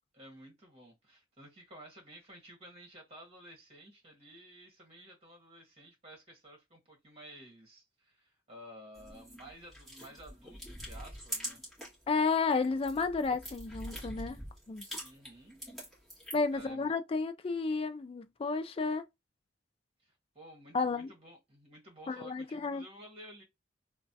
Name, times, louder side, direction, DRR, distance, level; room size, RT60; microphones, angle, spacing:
voice 1, 0.1-11.6 14.9-15.6 16.5-16.9 20.0-23.4, right 1 dB, 30° right, 1.4 m, -53 dB
sound 1, 8.9-12.0 12.4-16.6, equal, ahead, 1.6 m, -44 dB
voice 2, 12.1-14.4 14.7-14.8 16.3-19.0 20.7-21.1 22.1-22.8, left 4 dB, 30° left, 0.3 m, -32 dB
3.1 x 2.2 x 2.6 m
head